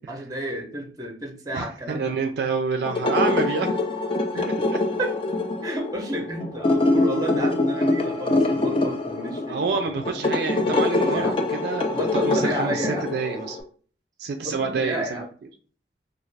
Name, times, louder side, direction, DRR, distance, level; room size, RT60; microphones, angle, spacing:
voice 1, 0.0-2.1 4.3-4.7 5.0-5.1 5.6-9.6 10.6-10.7 11.1-11.4 11.9-13.1 14.4-15.3, right 1 dB, 20° right, 2 dB, 0.6 m, -31 dB
voice 2, 1.5-3.8 9.5-13.6 14.2-15.3, right 4 dB, 60° right, 5 dB, 0.3 m, -28 dB
sound 1, 2.8-13.6, left 2 dB, 30° left, 0.3 m, -24 dB
2.4 x 2.4 x 3.2 m, 0.43 s
head